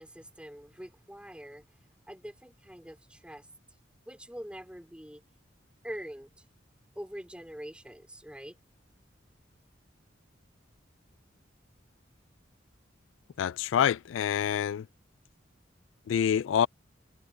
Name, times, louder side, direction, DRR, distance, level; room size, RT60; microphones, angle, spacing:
voice 1, 0.0-1.8 2.1-3.5 4.0-5.2 5.8-6.4 6.9-8.6, equal, 5° right, 3.4 m, -44 dB
voice 2, 13.4-14.9 16.1-16.7, left 8 dB, 85° left, 0.3 m, -26 dB
head